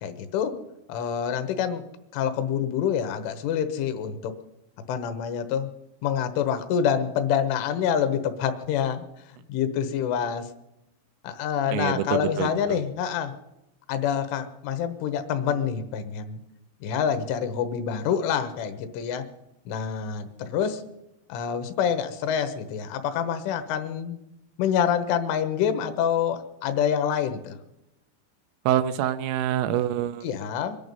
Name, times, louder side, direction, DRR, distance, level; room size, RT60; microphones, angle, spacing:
voice 1, 0.0-0.5 0.9-1.8 2.1-4.3 4.9-5.7 6.0-9.1 9.5-10.5 11.2-13.3 13.9-16.4 16.8-19.3 19.7-20.8 21.3-24.2 24.6-27.6 30.2-30.8, left 8 dB, 75° left, 10 dB, 3.5 m, -26 dB
voice 2, 11.7-12.8 28.7-30.3, right 11 dB, 80° right, 9 dB, 3.2 m, -26 dB
23.5 x 11.0 x 5.4 m, 0.90 s
omnidirectional pair, 5.8 m